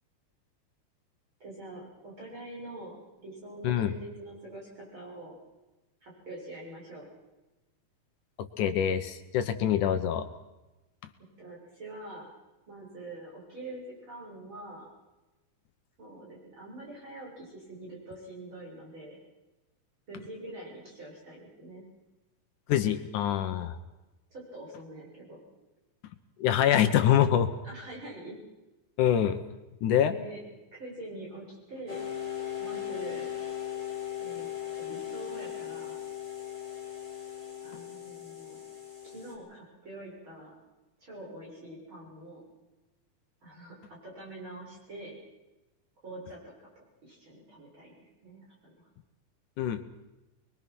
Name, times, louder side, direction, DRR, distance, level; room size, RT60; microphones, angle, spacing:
voice 1, 1.4-5.3 6.0-7.1 11.4-12.3 12.7-14.9 16.0-19.2 20.1-21.8 24.3-25.4 27.6-28.4 30.1-30.4 30.7-32.1 32.6-33.3 34.2-34.5 34.8-36.0 37.6-38.6 39.0-40.5 41.0-42.4 43.4-43.8 44.0-45.1 46.0-46.7 47.0-48.9, right 1 dB, 35° right, -4 dB, 7.6 m, -45 dB
voice 2, 8.6-10.3 22.7-23.8 26.4-27.5 29.0-29.4 29.8-30.1 49.6-49.8, left 10 dB, 75° left, 8 dB, 2.5 m, -25 dB
sound 1, 31.9-39.3, left 10 dB, 10° right, 5.2 m, -38 dB
25.5 x 22.5 x 6.2 m, 1.1 s
omnidirectional pair, 3.6 m